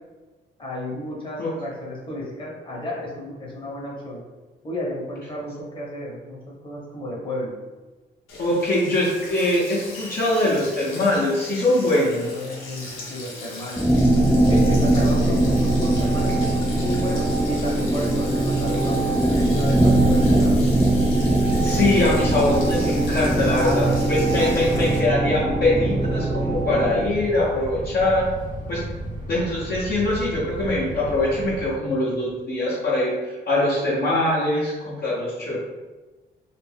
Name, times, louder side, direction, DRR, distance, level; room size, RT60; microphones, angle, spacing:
voice 1, 0.6-4.2 4.6-6.4 6.6-7.6 11.9-13.9 14.5-20.6 23.5-24.1 24.4-24.8, left 1 dB, 25° left, -5 dB, 1.0 m, -32 dB
Sink (filling or washing), 8.3-25.0, left 2 dB, 85° left, 0.8 m, -39 dB
voice 2, 8.4-12.3 21.6-28.3 28.7-28.8 29.3-35.6, left 1 dB, 50° left, -6 dB, 0.8 m, -22 dB
sound 1, 13.8-27.1, right 1 dB, ahead, 0.4 m, -21 dB
Fixed-wing aircraft airplane, 21.5-31.8, right 1 dB, 40° right, 0.7 m, -32 dB
2.5 x 2.2 x 3.3 m, 1.2 s
cardioid pair, 90°, 20 cm